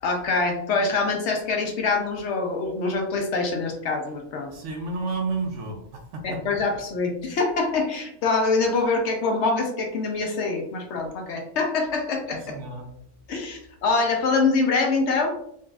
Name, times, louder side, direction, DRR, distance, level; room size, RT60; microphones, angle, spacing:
voice 1, 0.0-4.5 6.2-12.6 13.3-15.3, left 3 dB, 65° left, 2 dB, 0.8 m, -25 dB
voice 2, 4.5-6.2 12.4-12.9, right 3 dB, 70° right, 2 dB, 0.9 m, -31 dB
3.8 x 2.3 x 2.3 m, 0.75 s
omnidirectional pair, 1.4 m